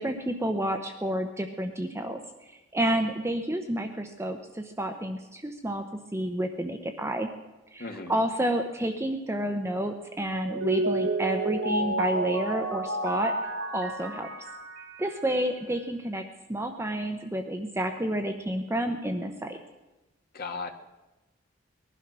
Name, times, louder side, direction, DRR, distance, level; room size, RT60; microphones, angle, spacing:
voice 1, 0.0-2.2 2.5-5.8 6.1-7.3 7.7-13.3 13.7-14.3 15.0-16.2 16.5-19.6, right 1 dB, 15° right, 5 dB, 0.8 m, -30 dB
voice 2, 7.8-8.1 20.3-20.7, left 4 dB, 50° left, 5 dB, 1.5 m, -36 dB
Mallet percussion, 10.3-15.3, right 2 dB, 65° right, 2.4 m, -30 dB
20.0 x 11.5 x 6.1 m, 1.1 s
head